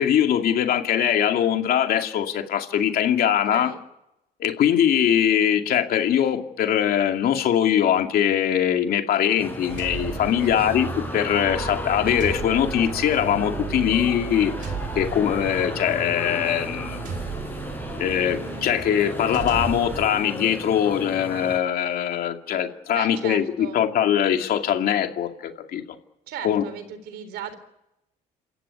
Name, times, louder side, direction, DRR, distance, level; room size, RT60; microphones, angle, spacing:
voice 1, 0.0-3.7 4.4-10.9 11.1-14.7 14.9-17.0 18.0-25.8 26.4-26.6, left 9 dB, 65° left, 5 dB, 2.5 m, -22 dB
voice 2, 3.2-3.8 10.4-10.8 22.9-23.8 26.3-27.6, right 8 dB, 80° right, 12 dB, 3.8 m, -37 dB
sound 1, 9.4-21.6, left 1 dB, 10° left, 5.4 m, -35 dB
sound 2, 9.7-20.1, right 6 dB, 50° right, 3.7 m, -34 dB
28.0 x 15.0 x 9.8 m, 0.87 s
cardioid pair, 110°, 17 cm